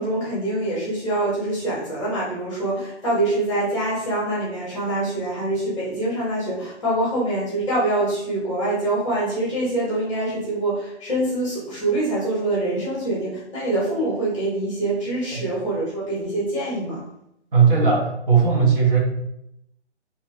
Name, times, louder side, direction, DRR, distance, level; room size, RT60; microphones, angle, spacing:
voice 1, 0.0-17.0, right 1 dB, 25° left, -7 dB, 1.0 m, -25 dB
voice 2, 17.5-19.0, right 5 dB, 50° right, -3 dB, 1.0 m, -18 dB
2.9 x 2.8 x 2.5 m, 0.80 s
figure-of-eight pair, 150°, 35 cm